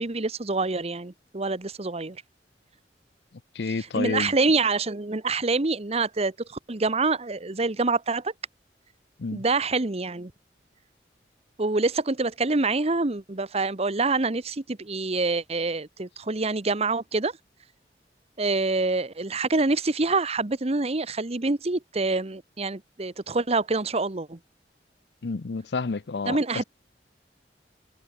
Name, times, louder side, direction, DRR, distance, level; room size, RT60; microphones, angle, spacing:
voice 1, 0.0-2.2 3.9-6.3 6.7-8.3 9.3-10.3 11.6-17.3 18.4-24.4 26.3-26.6, right 3 dB, 35° right, 1.0 m, -26 dB
voice 2, 3.5-4.3 9.2-9.4 25.2-26.4, left 4 dB, 70° left, 0.6 m, -29 dB
head